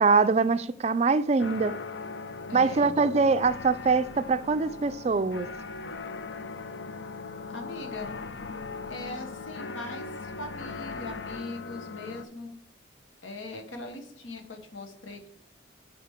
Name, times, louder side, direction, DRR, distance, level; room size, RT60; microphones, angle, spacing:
voice 1, 0.0-1.8 2.5-5.5, right 4 dB, 35° right, 0.3 m, -23 dB
sound 1, 1.4-12.3, left 4 dB, 70° left, 0.6 m, -39 dB
voice 2, 2.5-3.0 7.5-8.2 8.9-12.6 13.2-15.3, left 2 dB, 85° left, 1.2 m, -40 dB
8.7 x 5.0 x 3.5 m
head